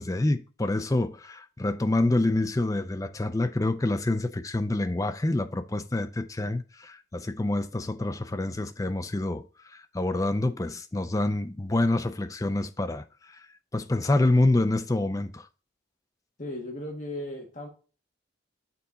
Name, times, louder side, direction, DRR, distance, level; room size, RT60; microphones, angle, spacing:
voice 1, 0.0-9.4 9.7-13.0 13.7-15.5, left 2 dB, 15° left, 0.4 m, -27 dB
voice 2, 16.4-17.7, left 1 dB, 40° left, 1.6 m, -36 dB
6.9 x 4.2 x 3.8 m
head